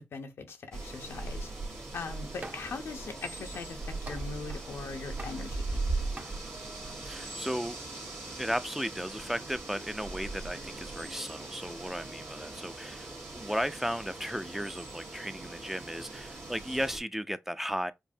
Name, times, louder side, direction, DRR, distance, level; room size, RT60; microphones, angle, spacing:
voice 1, 0.0-1.5 1.9-5.6, left 4 dB, 85° left, 0.6 m, -40 dB
sound 1, 0.7-17.0, right 2 dB, 85° right, 1.5 m, -39 dB
sound 2, 1.8-16.7, right 2 dB, 70° right, 1.3 m, -58 dB
sound 3, 2.4-2.8 3.2-4.7 5.2-5.9 6.2-6.4, right 2 dB, 45° right, 1.0 m, -46 dB
voice 2, 7.0-7.8 8.4-17.9, equal, 5° right, 0.4 m, -35 dB
5.3 x 2.1 x 2.6 m
cardioid pair, 40°, 4 cm